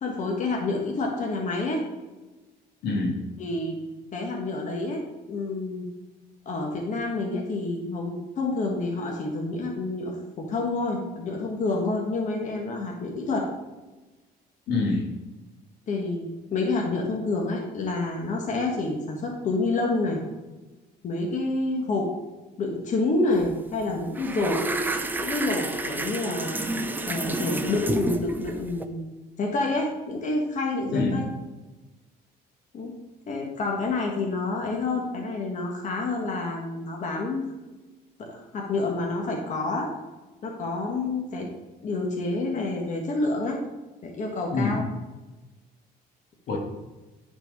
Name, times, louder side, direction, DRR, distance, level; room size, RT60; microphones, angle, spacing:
voice 1, 0.0-1.8 3.4-3.7 4.1-5.0 5.3-5.9 6.4-13.5 15.9-20.2 21.0-22.1 22.6-24.7 25.2-26.7 27.1-29.1 29.4-31.2 32.7-32.9 33.3-37.4 38.2-39.9 40.4-41.5 41.8-43.6 44.0-44.8, left 2 dB, 45° left, 0 dB, 1.5 m, -28 dB
voice 2, 2.8-3.2 14.7-15.0 30.9-31.2 44.5-44.8 46.5-46.6, left 3 dB, 75° left, 0 dB, 2.0 m, -25 dB
sound 1, 23.3-23.5 23.8-28.8, right 2 dB, 10° right, 0.6 m, -30 dB
9.5 x 4.5 x 5.4 m, 1.2 s
cardioid pair, 110°, 17 cm